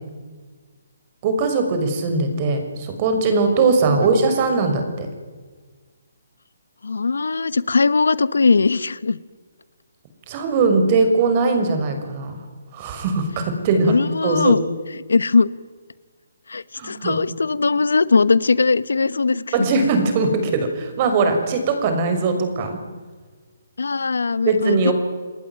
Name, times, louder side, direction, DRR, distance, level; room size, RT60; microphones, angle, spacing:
voice 1, 1.2-5.1 10.3-12.3 12.7-13.9 14.2-14.5 16.8-17.2 19.5-22.8 24.5-24.9, right 4 dB, 35° right, 7 dB, 6.0 m, -20 dB
voice 2, 6.8-9.2 13.8-14.6 15.1-15.5 16.5-19.9 23.8-24.9, left 4 dB, 85° left, 18 dB, 1.2 m, -19 dB
28.5 x 19.5 x 9.5 m, 1.5 s
hypercardioid pair, 150°, 0 cm